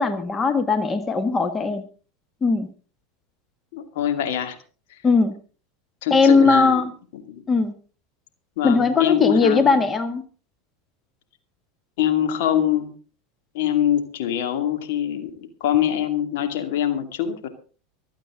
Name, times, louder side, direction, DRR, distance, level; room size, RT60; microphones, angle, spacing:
voice 1, 0.0-1.8 2.4-2.7 5.0-5.3 6.1-6.9 7.5-7.7 8.6-10.2, left 4 dB, 25° left, 9 dB, 1.6 m, -19 dB
voice 2, 3.7-4.6 6.0-6.8 7.1-7.4 8.6-9.7 12.0-12.9 13.5-17.5, left 10 dB, 65° left, 6 dB, 2.5 m, -23 dB
25.0 x 8.7 x 3.9 m, 0.37 s
hypercardioid pair, 85°, 0 cm